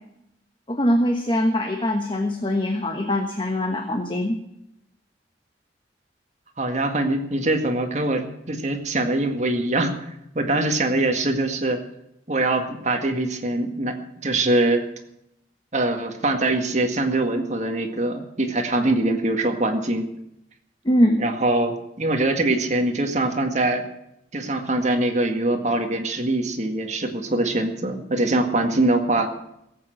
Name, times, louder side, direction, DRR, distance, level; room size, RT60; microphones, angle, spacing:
voice 1, 0.7-4.4 20.8-21.2, equal, 30° left, 5 dB, 1.3 m, -22 dB
voice 2, 6.6-9.9 10.3-11.8 12.3-14.0 14.2-14.8 15.7-20.1 21.2-23.8 24.3-29.3, right 2 dB, 40° right, 5 dB, 1.9 m, -23 dB
18.0 x 8.7 x 7.9 m, 0.80 s
head